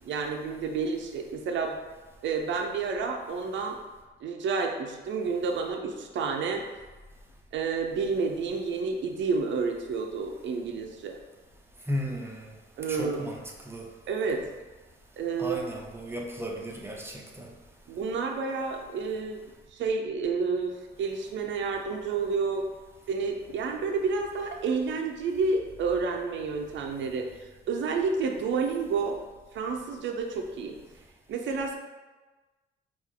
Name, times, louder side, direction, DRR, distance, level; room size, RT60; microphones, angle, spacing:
voice 1, 0.0-1.8 2.2-3.8 4.2-6.6 7.5-11.2 12.8-13.3 14.1-14.4 15.2-15.6 17.9-19.4 19.7-22.6 23.1-27.3 27.7-29.2 29.5-30.8 31.3-31.7, right 4 dB, 70° right, 3 dB, 0.6 m, -30 dB
voice 2, 11.9-12.5 12.9-13.9 15.4-17.5, equal, 10° right, 0 dB, 0.7 m, -35 dB
4.5 x 2.6 x 3.6 m, 1.2 s
cardioid pair, 90°, 20 cm